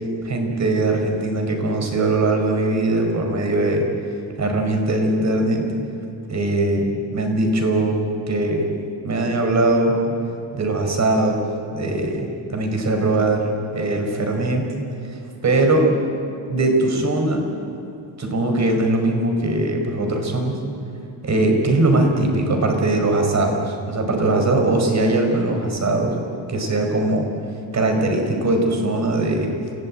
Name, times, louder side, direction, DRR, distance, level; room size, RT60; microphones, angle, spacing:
voice 1, 0.2-3.8 4.4-5.7 6.3-8.0 8.3-8.7 9.0-10.0 10.5-11.4 11.7-14.7 15.4-15.9 16.5-17.5 18.2-20.6 21.2-26.1 26.5-27.3 27.7-29.5, right 2 dB, 35° right, 3 dB, 4.8 m, -20 dB
29.0 x 17.0 x 8.7 m, 2.6 s
cardioid pair, 135°, 46 cm